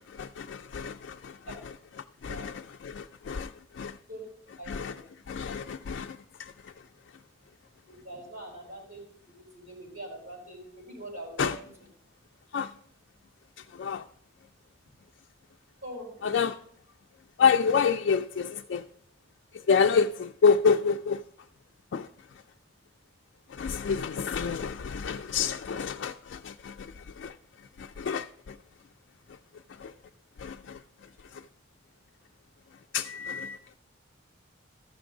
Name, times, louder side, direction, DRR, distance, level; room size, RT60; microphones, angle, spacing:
voice 1, 0.0-1.4 2.2-4.0 4.7-4.9 5.3-6.7 11.4-11.6 12.5-12.7 13.7-14.0 16.2-16.6 17.4-18.8 19.5-21.2 21.9-22.1 23.5-27.3 27.8-28.6 29.8-29.9 30.4-30.8 31.3-31.4 32.9-33.8, left 6 dB, 60° left, 0.3 m, -28 dB
voice 2, 4.6-5.0 7.9-9.0 9.3-11.7 15.8-16.1, right 1 dB, 40° right, 4.5 m, -42 dB
14.0 x 6.0 x 3.7 m
head